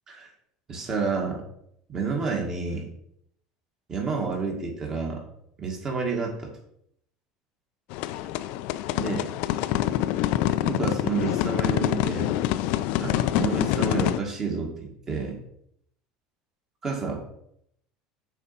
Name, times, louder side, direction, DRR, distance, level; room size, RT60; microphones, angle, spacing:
voice 1, 0.7-1.4 1.9-2.9 3.9-5.2 5.6-6.5 8.9-9.3 10.6-12.3 13.0-15.4 16.8-17.2, right 4 dB, 25° right, 1 dB, 1.8 m, -29 dB
sound 1, 7.9-14.2, left 13 dB, 65° left, 0.4 m, -26 dB
7.0 x 4.2 x 5.7 m, 0.73 s
cardioid pair, 150°, 2 cm